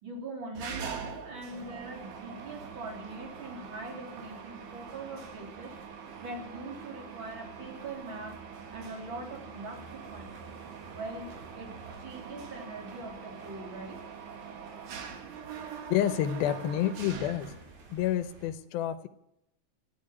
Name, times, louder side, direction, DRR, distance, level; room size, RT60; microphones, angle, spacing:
voice 1, 0.0-5.8 6.2-8.4 8.7-10.3 10.9-14.1, right 2 dB, 35° right, 1 dB, 3.8 m, -42 dB
Mechanisms, 0.5-18.0, right 7 dB, 60° right, 2.9 m, -44 dB
sound 1, 0.8-18.5, right 3 dB, 75° right, 5.3 m, -56 dB
voice 2, 15.9-17.5 17.9-19.1, left 11 dB, 85° left, 9 dB, 2.8 m, -29 dB
14.5 x 11.0 x 8.6 m, 0.81 s
omnidirectional pair, 4.2 m